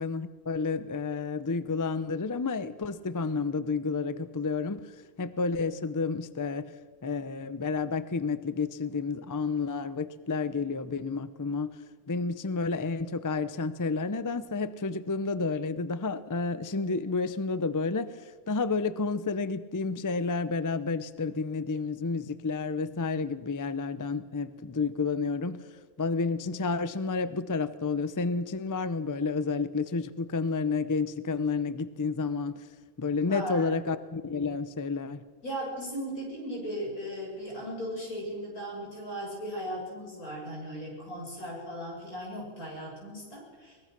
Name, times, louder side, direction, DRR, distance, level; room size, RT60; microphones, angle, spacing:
voice 1, 0.0-4.9 5.2-6.7 7.0-11.7 12.1-25.7 26.0-32.6 33.0-35.2, left 4 dB, 25° left, 14 dB, 0.4 m, -30 dB
voice 2, 33.2-33.8 35.4-43.9, equal, 90° left, -2 dB, 7.8 m, -37 dB
23.0 x 21.0 x 6.0 m, 1.5 s
omnidirectional pair, 1.5 m